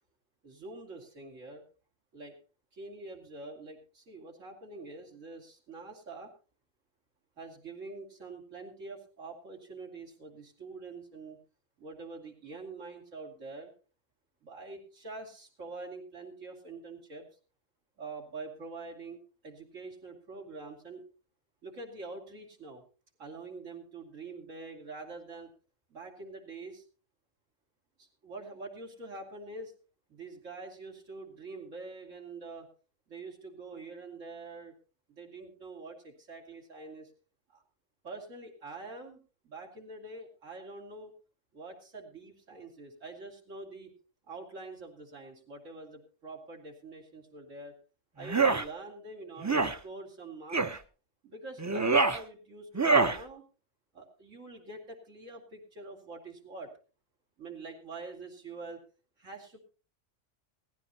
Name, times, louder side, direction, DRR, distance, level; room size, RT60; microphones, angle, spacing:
voice 1, 0.4-1.6 2.1-2.4 2.7-6.3 7.4-11.4 11.8-13.7 14.4-17.3 18.0-21.0 21.6-22.8 23.2-25.5 25.9-26.8 28.0-29.7 30.1-32.7 33.1-34.7 35.1-37.1 37.5-37.6 38.0-41.1 41.5-43.9 44.3-47.7 48.1-50.7 51.2-53.4 53.9-56.7 57.4-58.8 59.2-59.6, right 3 dB, 90° right, 1 dB, 3.1 m, -45 dB
sound 1, 48.2-48.6 49.4-49.8 50.5-50.8 51.6-52.2 52.7-53.2, right 4 dB, 25° right, 0.4 m, -25 dB
18.5 x 15.0 x 2.9 m, 0.35 s
omnidirectional pair, 1.3 m